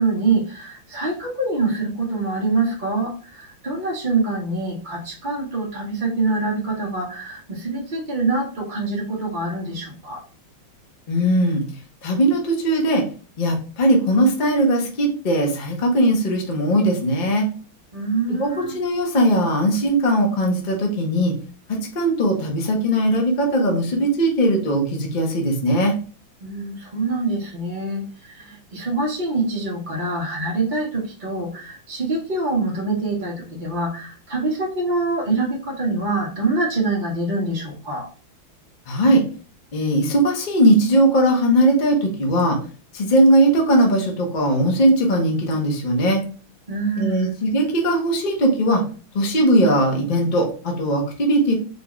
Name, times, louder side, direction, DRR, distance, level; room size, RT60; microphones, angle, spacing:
voice 1, 0.0-10.2 17.9-18.8 26.4-38.1 46.7-47.3, right 3 dB, 60° right, -2 dB, 0.5 m, -25 dB
voice 2, 11.1-11.6 12.0-13.0 13.4-17.5 18.4-21.3 21.7-25.9 38.9-39.2 39.7-42.6 42.9-46.2 47.0-48.8 49.1-51.5, right 1 dB, 65° left, 1 dB, 0.4 m, -19 dB
4.5 x 2.4 x 3.0 m, 0.38 s
omnidirectional pair, 2.3 m